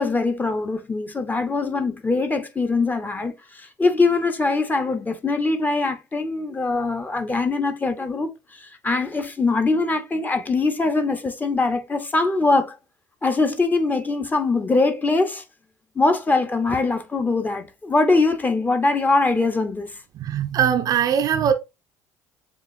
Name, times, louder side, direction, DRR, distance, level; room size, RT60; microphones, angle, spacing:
voice 1, 0.0-12.8 13.2-15.4 15.9-19.9, left 3 dB, 20° left, 1.0 m, -22 dB
voice 2, 20.1-21.5, right 8 dB, 45° right, 0.6 m, -21 dB
7.4 x 2.5 x 2.6 m
figure-of-eight pair, 60°, 9 cm